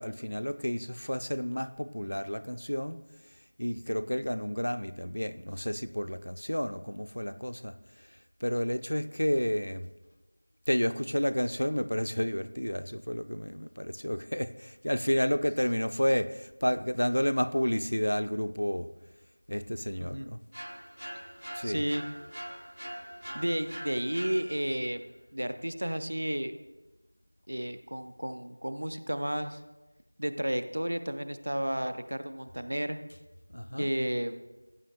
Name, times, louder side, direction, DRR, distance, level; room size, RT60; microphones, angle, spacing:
voice 1, 0.0-3.0 3.6-9.9 10.7-18.9 19.5-20.4 21.5-21.8 33.5-33.9, equal, 45° left, 0.4 m, -31 dB
sound 1, 20.5-24.9, equal, 55° right, 1.2 m, -43 dB
voice 2, 21.6-22.0 23.3-26.6 27.5-29.6 30.2-33.0 33.7-34.4, right 1 dB, 30° right, 0.4 m, -32 dB
17.0 x 8.6 x 2.4 m
figure-of-eight pair, 180°, 0 cm